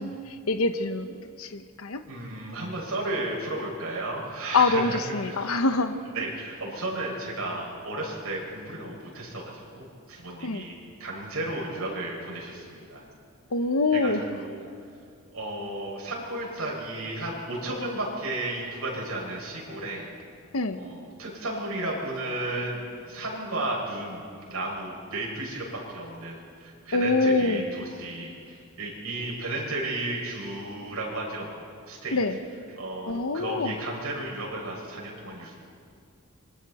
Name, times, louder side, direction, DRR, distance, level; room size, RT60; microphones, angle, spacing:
voice 1, 0.0-2.0 4.5-5.9 10.4-10.6 13.5-14.2 20.5-20.8 26.9-27.6 32.1-32.4 33.1-33.7, left 3 dB, 75° left, 8 dB, 1.0 m, -25 dB
voice 2, 2.1-5.7 6.1-13.0 13.9-14.7 15.3-20.1 20.7-31.5 31.9-32.2 32.7-35.5, right 2 dB, 85° right, -3 dB, 6.5 m, -34 dB
26.5 x 25.0 x 4.3 m, 2.3 s
head